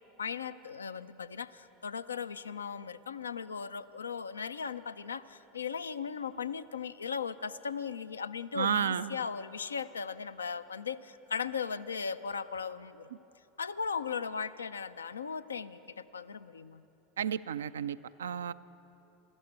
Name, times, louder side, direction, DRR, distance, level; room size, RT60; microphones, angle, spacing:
voice 1, 0.2-13.1 13.6-16.8, left 6 dB, 85° left, 13 dB, 0.4 m, -37 dB
voice 2, 8.5-9.2 17.2-18.5, right 8 dB, 80° right, 15 dB, 0.4 m, -32 dB
14.5 x 13.5 x 7.5 m, 3.0 s
hypercardioid pair, 80°, 0 cm